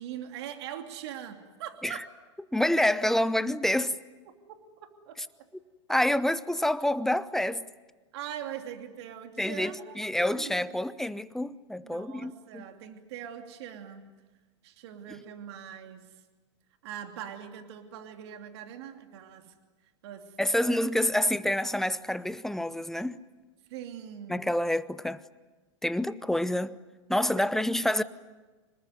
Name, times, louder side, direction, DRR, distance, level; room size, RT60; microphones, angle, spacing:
voice 1, 0.0-2.0 4.5-4.6 5.1-5.5 8.1-10.8 11.8-14.0 14.6-16.1 16.8-19.5 20.0-20.7 23.7-24.5 27.4-27.5 27.8-27.9, right 10 dB, 60° right, 2.9 m, -42 dB
voice 2, 2.5-4.0 5.9-7.7 9.4-12.6 20.4-23.2 24.3-25.2 25.8-26.7 27.1-28.0, left 1 dB, ahead, 0.8 m, -27 dB
26.5 x 20.0 x 9.5 m
hypercardioid pair, 115°, 15 cm